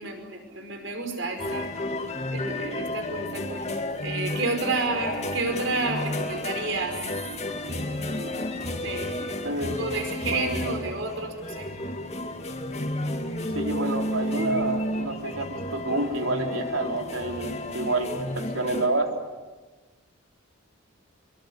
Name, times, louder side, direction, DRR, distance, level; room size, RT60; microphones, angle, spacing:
voice 1, 0.0-1.7 2.3-3.7 4.0-7.0 7.4-8.4 8.7-11.7, right 3 dB, 60° right, 5 dB, 5.3 m, -31 dB
sound 1, 1.4-18.9, left 1 dB, 30° left, 2.3 m, -32 dB
voice 2, 9.4-9.8 10.3-10.8 13.5-19.1, right 2 dB, 75° right, 3 dB, 3.7 m, -28 dB
25.5 x 23.5 x 9.6 m, 1.3 s
head